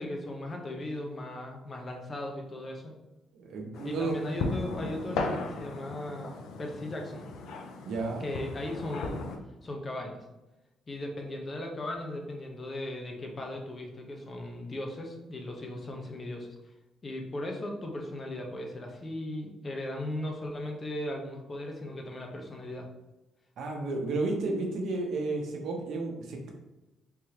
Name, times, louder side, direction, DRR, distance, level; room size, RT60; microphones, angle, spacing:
voice 1, 0.0-2.9 3.8-7.3 8.2-9.2 9.6-10.2 10.9-16.5 17.0-22.9, left 1 dB, 35° left, 2 dB, 0.8 m, -37 dB
voice 2, 3.3-4.2 7.8-8.2 23.6-26.5, right 3 dB, 75° right, 1 dB, 0.8 m, -32 dB
sound 1, 3.7-9.4, left 3 dB, 80° left, 0.4 m, -36 dB
3.7 x 3.0 x 2.9 m, 1.0 s
cardioid pair, 90°, 0 cm